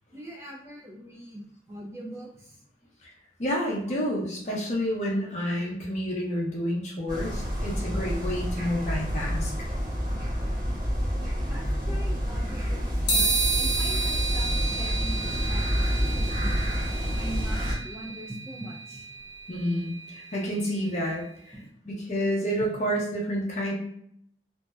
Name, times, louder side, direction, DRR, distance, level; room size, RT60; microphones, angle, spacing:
voice 1, 0.1-2.6 11.5-19.1 21.5-21.7, right 1 dB, 15° right, -3 dB, 0.4 m, -42 dB
voice 2, 3.4-9.7 19.5-21.6 21.8-23.7, equal, 40° left, -3 dB, 0.6 m, -29 dB
sound 1, 7.1-17.7, equal, 45° right, 0.8 m, -28 dB
sound 2, 13.1-20.7, right 3 dB, 85° left, 0.7 m, -31 dB
2.6 x 2.1 x 2.3 m, 0.70 s
head